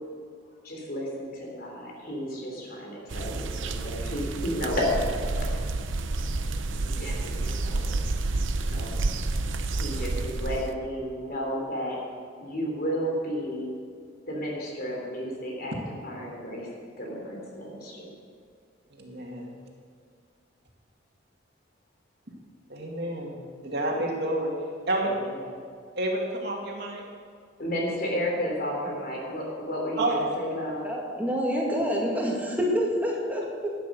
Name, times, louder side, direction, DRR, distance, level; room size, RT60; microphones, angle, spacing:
voice 1, 0.6-5.5 6.8-8.0 8.7-9.2 9.7-12.0 12.4-13.7 14.3-15.7 16.0-16.7 17.0-18.1 25.0-25.4 27.6-30.9, equal, 55° left, -1 dB, 3.6 m, -32 dB
sound 1, 3.1-10.7, right 2 dB, 90° right, 0.8 m, -29 dB
voice 2, 18.9-19.6 22.7-24.5 24.9-25.1 26.0-27.0 30.0-30.2, right 1 dB, 60° right, -1 dB, 2.4 m, -29 dB
voice 3, 30.8-33.7, equal, 10° right, -2 dB, 2.1 m, -27 dB
13.0 x 9.4 x 6.3 m, 2.1 s
head